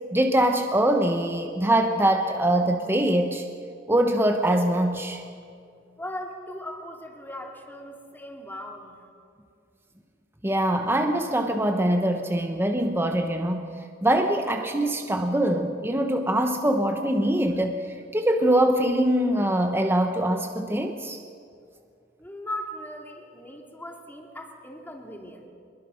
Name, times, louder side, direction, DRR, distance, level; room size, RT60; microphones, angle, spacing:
voice 1, 0.1-3.4 3.9-5.2 10.4-13.7 14.0-21.2, right 1 dB, 15° right, 5 dB, 1.0 m, -23 dB
voice 2, 6.0-9.0 22.2-25.4, left 1 dB, 10° left, 1 dB, 2.6 m, -38 dB
24.0 x 21.5 x 6.4 m, 2.3 s
head